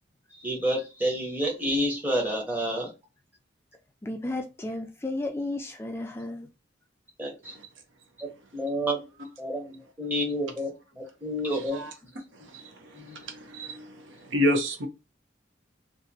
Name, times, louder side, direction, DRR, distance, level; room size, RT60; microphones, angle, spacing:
voice 1, 0.4-2.9 7.2-7.5 8.2-8.3 8.5-9.0 9.4-11.8 12.9-13.2, equal, 10° right, 0.9 m, -29 dB
voice 2, 4.0-6.5, left 2 dB, 10° left, 0.3 m, -33 dB
voice 3, 13.3-13.9 14.3-14.9, left 1 dB, 80° right, 0.8 m, -27 dB
2.8 x 2.5 x 2.7 m
head